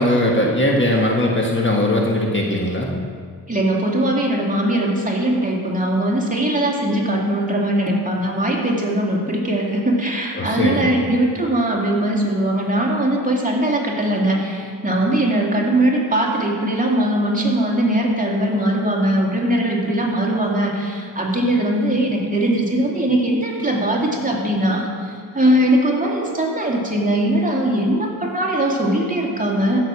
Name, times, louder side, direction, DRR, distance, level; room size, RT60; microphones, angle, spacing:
voice 1, 0.0-2.9 10.4-10.9, left 1 dB, 30° left, -1 dB, 1.5 m, -19 dB
voice 2, 3.5-29.8, right 1 dB, 20° right, -2 dB, 2.4 m, -20 dB
15.0 x 6.6 x 6.2 m, 2.1 s
cardioid pair, 80°, 40 cm